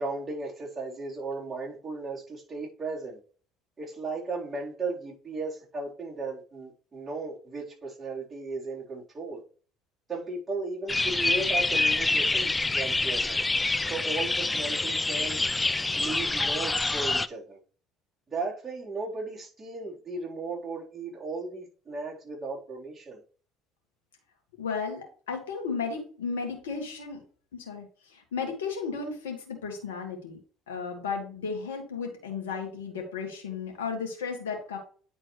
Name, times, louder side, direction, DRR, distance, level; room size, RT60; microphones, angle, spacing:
voice 1, 0.0-3.2 3.8-9.4 10.1-13.4 13.9-15.4 15.9-17.6 18.3-23.2, right 3 dB, 25° right, 3.9 m, -36 dB
sound 1, 10.9-17.3, left 3 dB, 15° left, 0.4 m, -26 dB
voice 2, 24.6-27.2 27.5-30.4 30.7-34.8, left 5 dB, 80° left, 1.7 m, -34 dB
9.5 x 4.4 x 3.2 m
hypercardioid pair, 65°, 0 cm